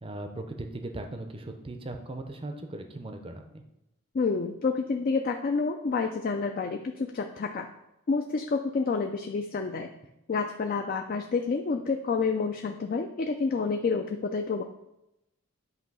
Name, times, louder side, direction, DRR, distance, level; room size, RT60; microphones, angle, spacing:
voice 1, 0.0-3.6, right 2 dB, 25° right, 5 dB, 0.5 m, -38 dB
voice 2, 4.1-7.7 8.1-9.9 10.3-14.6, left 4 dB, 40° left, 5 dB, 0.3 m, -29 dB
8.2 x 2.8 x 5.3 m, 0.90 s
head